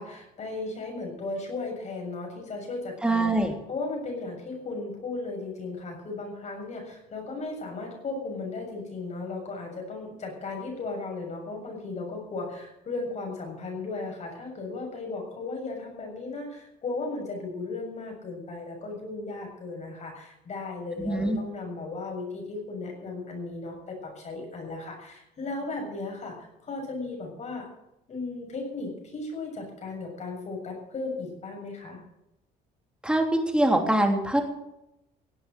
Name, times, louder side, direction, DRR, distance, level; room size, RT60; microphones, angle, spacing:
voice 1, 0.0-27.7 28.1-32.0, left 3 dB, 45° left, 2 dB, 7.2 m, -36 dB
voice 2, 3.0-3.5 21.0-21.4 33.0-33.2 33.5-34.4, right 1 dB, 5° right, 3 dB, 3.2 m, -23 dB
17.5 x 8.5 x 7.7 m, 0.87 s
cardioid pair, 110°, 17 cm